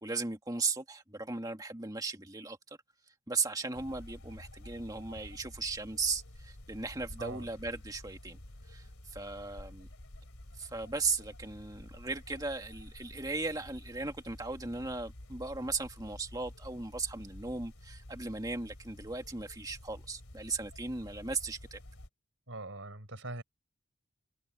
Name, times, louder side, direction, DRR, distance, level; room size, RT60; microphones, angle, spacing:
voice 1, 0.0-2.6 3.3-8.4 8.7-9.9 10.6-21.8, right 3 dB, 15° right, 2.0 m, -37 dB
sound 1, 3.7-22.1, left 1 dB, 90° left, 2.8 m, -50 dB
voice 2, 7.2-7.5 22.5-23.4, right 2 dB, 65° right, 5.3 m, -42 dB
head